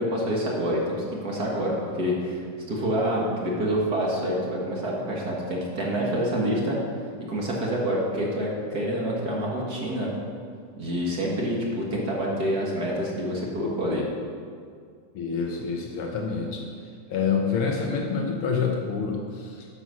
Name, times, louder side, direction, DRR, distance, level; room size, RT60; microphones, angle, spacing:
voice 1, 0.0-6.8 7.3-10.1 10.8-14.0, equal, 45° right, -3 dB, 1.4 m, -27 dB
voice 2, 15.1-16.7 17.1-19.7, left 5 dB, 90° left, 1 dB, 1.1 m, -27 dB
9.6 x 7.1 x 6.2 m, 2.2 s
omnidirectional pair, 3.7 m